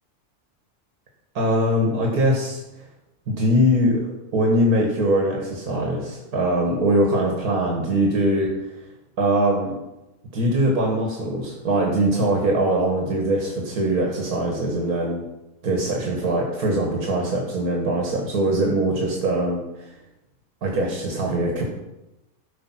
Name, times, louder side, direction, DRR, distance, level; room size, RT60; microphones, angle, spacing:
voice 1, 1.4-2.6 3.3-4.0 4.3-8.5 9.2-9.7 10.3-15.2 15.6-19.9 20.6-21.6, right 1 dB, 80° right, 0 dB, 2.1 m, -22 dB
13.0 x 5.2 x 5.8 m, 0.98 s
omnidirectional pair, 1.6 m